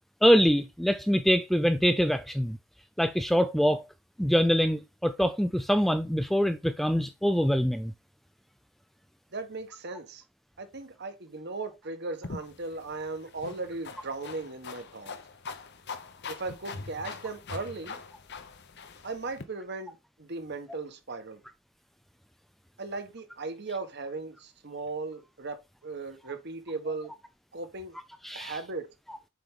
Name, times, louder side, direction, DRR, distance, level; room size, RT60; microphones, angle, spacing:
voice 1, 0.2-2.6 3.0-3.8 4.2-7.9 28.2-28.6, equal, ahead, 0.3 m, -24 dB
voice 2, 9.3-10.2 10.6-15.1 16.3-18.0 19.0-21.4 22.8-27.1 27.5-28.0 28.3-28.9, right 3 dB, 50° right, 1.2 m, -37 dB
sound 1, 12.2-19.4, left 4 dB, 50° left, 0.8 m, -43 dB
7.7 x 4.7 x 3.6 m
head